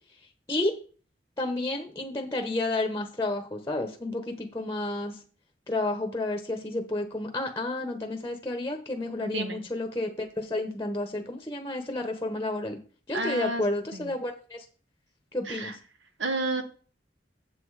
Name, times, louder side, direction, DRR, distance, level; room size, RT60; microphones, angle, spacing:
voice 1, 1.4-5.2 5.7-12.8 13.1-14.6 15.3-15.8, left 2 dB, 15° left, 5 dB, 1.0 m, -31 dB
voice 2, 9.2-9.6 13.1-13.6 13.9-14.1 15.4-15.7 16.2-16.6, right 2 dB, 90° right, 7 dB, 1.5 m, -31 dB
7.7 x 7.7 x 4.8 m, 0.40 s
head